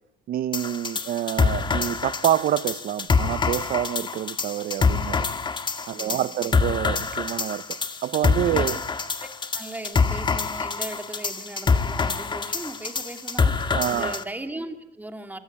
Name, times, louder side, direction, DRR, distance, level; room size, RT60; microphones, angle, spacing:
voice 1, 0.3-5.3 5.9-8.8 13.7-14.2, right 11 dB, 60° right, 1.0 m, -27 dB
sound 1, 0.5-14.2, left 4 dB, 25° left, 2.0 m, -26 dB
voice 2, 5.9-6.5 8.4-8.8 9.2-15.4, right 2 dB, 10° right, 2.8 m, -38 dB
25.5 x 23.5 x 8.8 m
cardioid pair, 110°, 17 cm